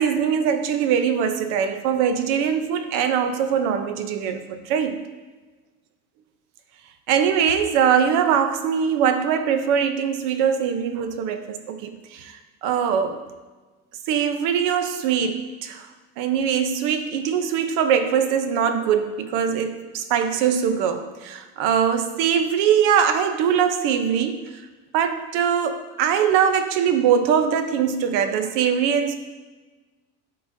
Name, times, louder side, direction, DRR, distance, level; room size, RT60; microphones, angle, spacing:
voice 1, 0.0-5.0 7.1-13.2 14.1-15.9 16.2-24.4 24.9-29.1, right 8 dB, 80° right, 9 dB, 0.7 m, -22 dB
11.5 x 3.9 x 2.6 m, 1.3 s
cardioid pair, 125°, 31 cm